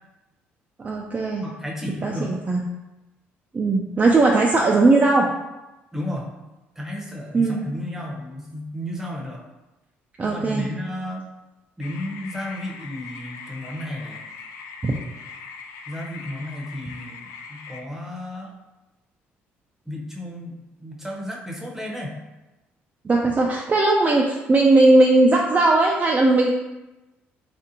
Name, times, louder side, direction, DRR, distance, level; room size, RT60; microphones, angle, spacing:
voice 1, 0.8-1.4 2.0-2.6 3.5-5.3 7.3-7.6 10.2-10.7 14.8-14.9 23.0-26.5, right 2 dB, 25° right, -1 dB, 0.4 m, -18 dB
voice 2, 1.4-2.3 5.9-6.3 6.8-9.4 10.2-11.2 11.8-14.2 15.9-18.5 19.9-22.2, left 1 dB, 5° right, -2 dB, 0.8 m, -33 dB
sound 1, 11.8-17.8, left 5 dB, 75° left, 0.3 m, -40 dB
3.4 x 2.5 x 2.7 m, 1.0 s
supercardioid pair, 65°, 5 cm